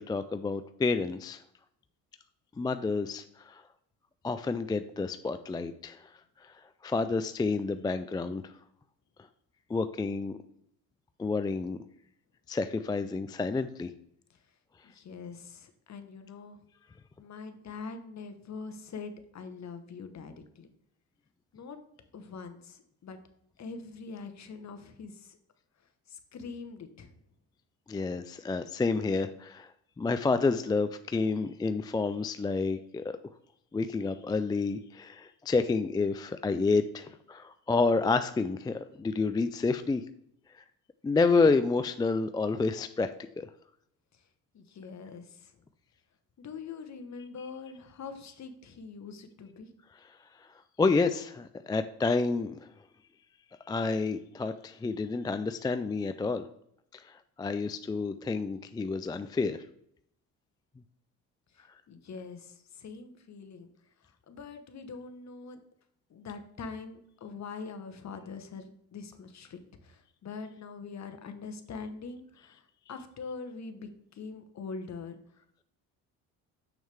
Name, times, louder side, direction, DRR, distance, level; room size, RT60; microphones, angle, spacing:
voice 1, 0.0-1.4 2.6-3.6 4.2-6.0 6.8-8.5 9.7-10.4 11.2-11.8 12.5-13.9 27.9-29.7 30.0-33.2 33.7-40.0 41.0-43.1 43.4-43.5 50.8-52.6 53.7-56.5 56.9-57.0 57.4-59.6, left 4 dB, 10° left, 10 dB, 0.3 m, -29 dB
voice 2, 14.8-16.6 17.2-20.7 21.5-21.8 22.1-23.2 23.6-25.4 26.1-27.2 44.1-44.2 44.5-45.5 46.4-49.7 61.5-63.7 64.0-65.6 66.1-75.2, left 4 dB, 45° left, 8 dB, 1.2 m, -43 dB
6.6 x 6.2 x 3.5 m, 0.71 s
supercardioid pair, 65°, 40 cm